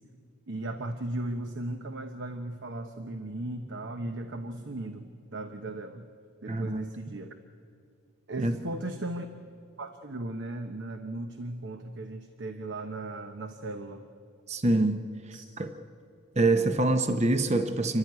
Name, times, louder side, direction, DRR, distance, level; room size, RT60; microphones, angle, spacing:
voice 1, 0.5-6.1 6.4-7.3 8.3-9.3 9.8-14.0 15.3-15.4, right 2 dB, 55° right, 7 dB, 1.0 m, -37 dB
voice 2, 6.5-6.8 8.4-8.5 14.5-15.1 15.6-15.7 16.4-18.0, right 2 dB, 30° right, 8 dB, 0.8 m, -25 dB
29.0 x 12.0 x 9.5 m, 2.4 s
head